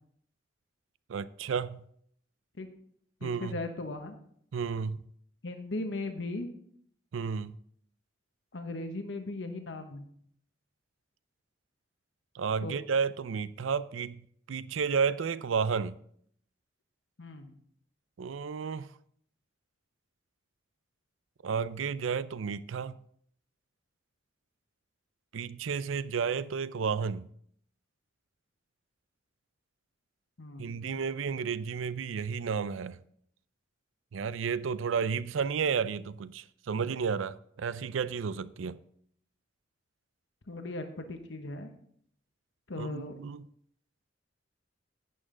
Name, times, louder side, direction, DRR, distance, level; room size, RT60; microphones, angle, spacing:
voice 1, 1.1-1.8 3.2-3.6 4.5-5.0 7.1-7.5 12.3-16.0 18.2-18.9 21.4-23.0 25.3-27.3 30.6-33.0 34.1-38.8 42.8-43.4, right 6 dB, 80° right, 0.4 m, -32 dB
voice 2, 3.2-4.2 5.4-6.5 8.5-10.1 12.6-12.7 17.2-17.5 30.4-30.9 40.5-41.7 42.7-43.2, left 2 dB, 65° left, 1.0 m, -38 dB
11.0 x 8.7 x 3.8 m
head